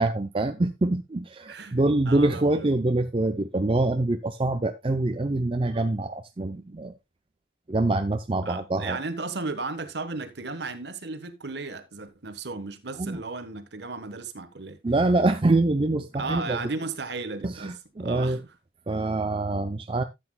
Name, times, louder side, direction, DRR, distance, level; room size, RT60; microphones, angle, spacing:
voice 1, 0.0-6.9 7.7-9.0 13.0-13.2 14.8-16.6 17.4-18.4 18.9-20.0, right 2 dB, 30° right, 0.5 m, -25 dB
voice 2, 2.0-2.7 8.4-14.8 16.2-18.4, right 3 dB, 60° right, 1.2 m, -35 dB
13.5 x 7.9 x 2.2 m
head